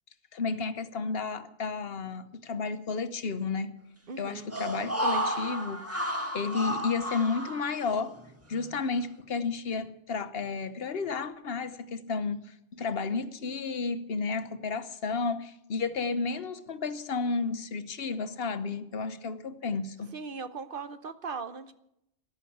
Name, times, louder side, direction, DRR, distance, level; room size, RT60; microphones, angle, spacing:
voice 1, 0.3-3.7 4.2-5.9 6.3-8.2 8.5-20.1, left 4 dB, 65° left, 1.2 m, -32 dB
voice 2, 4.1-4.5 20.1-21.7, right 4 dB, 55° right, 1.0 m, -38 dB
sound 1, 4.5-8.2 8.5-8.6, equal, 15° right, 1.8 m, -32 dB
14.0 x 11.5 x 8.6 m
omnidirectional pair, 1.1 m